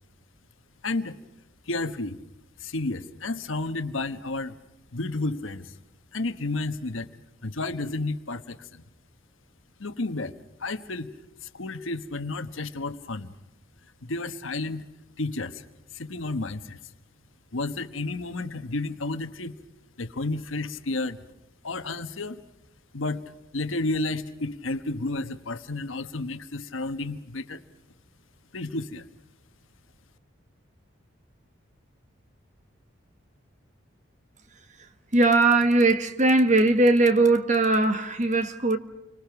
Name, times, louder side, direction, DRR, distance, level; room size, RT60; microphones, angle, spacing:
voice 1, 0.8-1.2 1.7-2.2 2.6-4.6 4.9-5.8 6.1-7.1 7.4-8.8 9.8-10.3 10.6-11.1 11.4-13.3 14.0-14.9 15.2-15.6 15.9-16.9 17.5-19.6 20.0-21.2 21.6-22.4 22.9-23.2 23.5-27.6 28.5-29.0, left 2 dB, 80° left, 1.3 m, -31 dB
voice 2, 35.1-38.8, right 2 dB, 35° right, 1.6 m, -20 dB
29.5 x 25.0 x 5.9 m
head